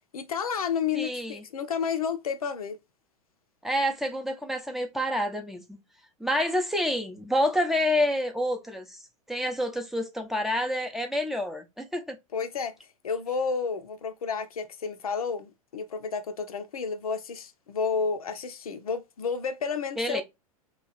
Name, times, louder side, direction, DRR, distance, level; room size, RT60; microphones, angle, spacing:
voice 1, 0.1-2.8 12.3-12.7 13.0-20.2, left 6 dB, 75° left, 0.6 m, -31 dB
voice 2, 0.9-1.4 3.6-5.8 6.2-9.0 9.3-12.2 20.0-20.2, left 1 dB, ahead, 0.6 m, -28 dB
3.0 x 2.4 x 3.9 m
figure-of-eight pair, 95°, 19 cm